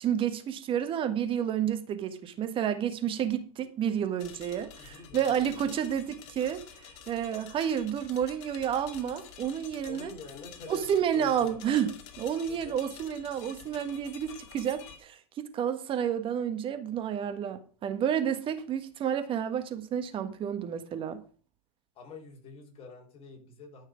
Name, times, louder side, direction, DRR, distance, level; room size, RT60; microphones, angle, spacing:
voice 1, 0.0-6.6 7.1-10.1 10.7-21.2, right 9 dB, 30° right, 1.4 m, -30 dB
sound 1, 4.2-15.0, left 9 dB, 55° left, 2.1 m, -49 dB
voice 2, 4.8-5.8 9.9-10.8 11.1-11.9 12.5-12.8 22.0-23.9, left 5 dB, 30° left, 5.3 m, -47 dB
13.0 x 6.5 x 5.0 m
hypercardioid pair, 120°, 18 cm